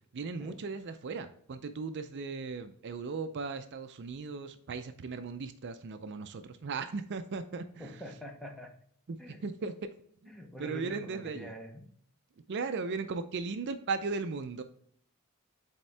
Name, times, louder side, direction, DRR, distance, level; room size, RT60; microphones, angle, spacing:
voice 1, 0.1-8.0 9.1-9.7 10.2-10.3 10.6-11.5 12.5-14.6, right 4 dB, 50° right, 9 dB, 0.4 m, -37 dB
voice 2, 7.8-8.7 9.2-9.4 10.3-11.9, equal, ahead, 3 dB, 0.8 m, -45 dB
8.4 x 3.6 x 3.3 m, 0.62 s
head